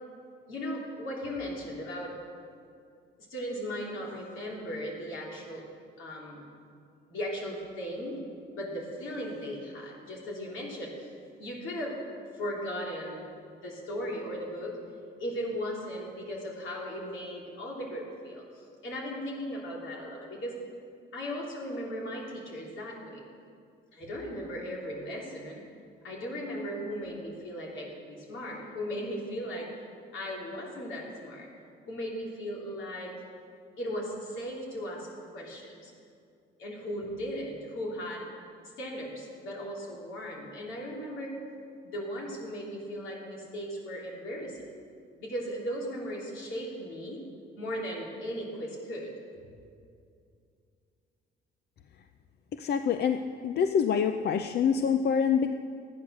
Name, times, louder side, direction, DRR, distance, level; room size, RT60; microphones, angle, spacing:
voice 1, 0.5-2.2 3.3-5.6 6.0-6.4 7.1-8.2 8.5-11.1 11.4-12.0 12.3-13.2 13.5-14.8 15.2-20.6 21.1-23.2 23.9-25.6 26.0-29.7 30.1-31.5 31.9-33.1 33.8-35.1 35.3-35.9 36.6-38.2 38.8-41.4 41.8-44.7 45.2-47.2 47.6-49.1, equal, 80° left, -3 dB, 3.4 m, -37 dB
voice 2, 52.5-55.5, left 7 dB, 55° left, 8 dB, 0.5 m, -26 dB
13.0 x 9.7 x 6.4 m, 2.4 s
cardioid pair, 90°, 20 cm